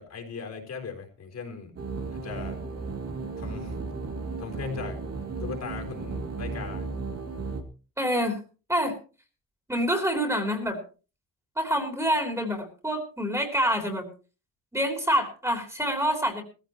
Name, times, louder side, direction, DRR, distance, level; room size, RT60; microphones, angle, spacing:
voice 1, 0.0-1.7 2.1-2.6 3.4-3.7 4.4-5.0 5.4-6.9, left 5 dB, 50° left, 2 dB, 4.3 m, -38 dB
sound 1, 1.8-7.6, right 4 dB, 45° right, 2.6 m, -34 dB
voice 2, 8.0-8.4 8.7-8.9 9.7-10.8 11.5-14.1 14.7-16.4, equal, 10° right, 4 dB, 3.4 m, -26 dB
20.0 x 15.0 x 3.0 m, 0.34 s
wide cardioid pair, 150°, 34 cm